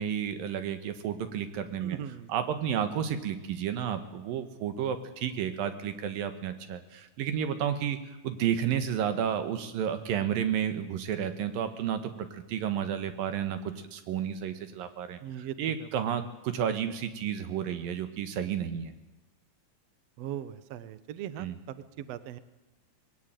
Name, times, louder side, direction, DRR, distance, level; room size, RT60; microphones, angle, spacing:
voice 1, 0.0-2.0 2.3-8.0 8.2-12.0 12.5-15.2 15.6-18.9 21.4-21.6, right 9 dB, 90° right, 9 dB, 3.2 m, -31 dB
voice 2, 1.8-2.3 15.2-16.1 20.2-22.4, right 10 dB, 65° right, 14 dB, 1.7 m, -40 dB
20.5 x 17.0 x 9.1 m, 1.1 s
omnidirectional pair, 3.9 m